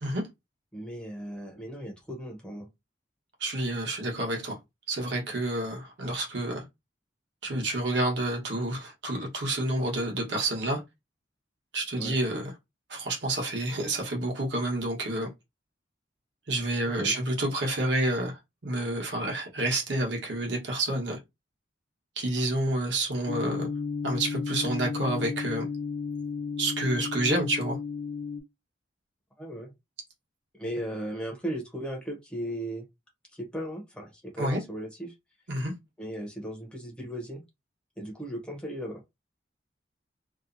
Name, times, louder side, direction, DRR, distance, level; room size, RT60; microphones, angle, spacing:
voice 1, 0.7-2.7 11.9-12.2 16.8-17.2 29.4-29.7 30.6-32.9 33.3-35.1 36.0-37.4 38.0-39.0, equal, 5° left, 0.6 m, -36 dB
voice 2, 3.4-4.6 4.9-6.6 7.4-10.8 11.7-12.5 12.9-15.3 16.5-21.2 22.2-23.7 24.0-25.7 26.6-27.8 34.4-34.6 35.5-35.7, right 1 dB, 65° right, 1.0 m, -29 dB
sound 1, 23.3-28.4, left 5 dB, 90° left, 0.8 m, -33 dB
2.7 x 2.0 x 2.5 m
head